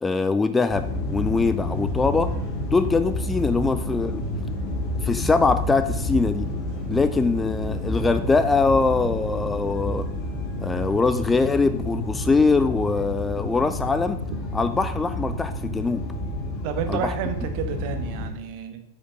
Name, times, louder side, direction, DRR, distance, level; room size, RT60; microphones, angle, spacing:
voice 1, 0.0-2.3 2.6-4.2 5.0-6.5 6.9-10.1 10.6-14.2 14.5-16.0 16.9-17.1, left 4 dB, 10° left, 11 dB, 0.5 m, -22 dB
sound 1, 0.7-18.3, left 1 dB, 30° left, 2.3 m, -29 dB
voice 2, 16.6-18.8, right 8 dB, 45° right, 8 dB, 1.1 m, -30 dB
8.6 x 5.5 x 5.2 m, 0.85 s
figure-of-eight pair, 90°, 0 cm